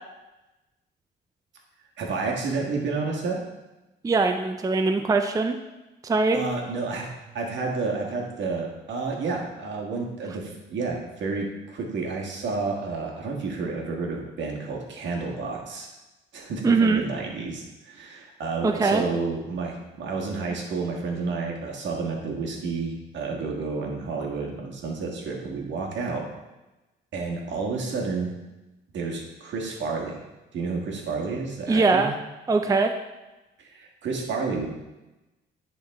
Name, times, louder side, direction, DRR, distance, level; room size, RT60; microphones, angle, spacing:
voice 1, 2.0-3.4 6.3-7.1 7.3-15.9 16.3-26.2 27.1-28.3 28.9-30.2 30.5-32.1 33.6-34.7, right 4 dB, 70° right, 0 dB, 1.6 m, -30 dB
voice 2, 4.0-5.5 6.0-6.4 16.6-17.0 18.6-19.0 31.7-32.1 32.5-32.9, right 3 dB, 15° right, 6 dB, 0.4 m, -21 dB
10.5 x 3.9 x 3.5 m, 1.1 s
cardioid pair, 90°, 20 cm